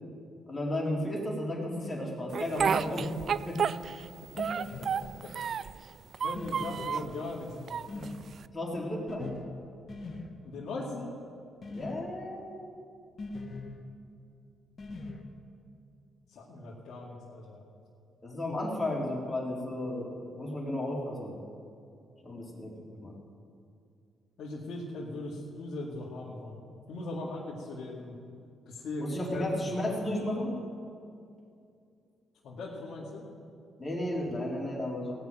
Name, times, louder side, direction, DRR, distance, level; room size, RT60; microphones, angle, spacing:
voice 1, 0.5-3.6 8.5-9.3 11.7-12.7 18.2-21.4 22.2-23.1 29.0-30.5 33.8-35.1, left 1 dB, 25° left, -3 dB, 3.7 m, -33 dB
Speech, 2.3-4.1 4.4-5.8 6.1-7.1 7.7-8.4, right 7 dB, 55° right, 0.3 m, -31 dB
sound 1, 2.7-3.2 4.4-4.9 6.4-7.0 7.9-8.2 9.1-9.5 9.9-10.3 11.6-12.1 13.2-13.8 14.8-15.2, left 2 dB, 45° left, 1.6 m, -41 dB
voice 2, 4.4-5.3 6.2-7.8 10.4-11.1 16.3-17.6 24.4-26.6 26.9-28.1 28.7-29.5 32.4-33.3, left 2 dB, 70° left, -7 dB, 2.5 m, -39 dB
17.5 x 6.0 x 9.2 m, 2.4 s
cardioid pair, 90°, 0 cm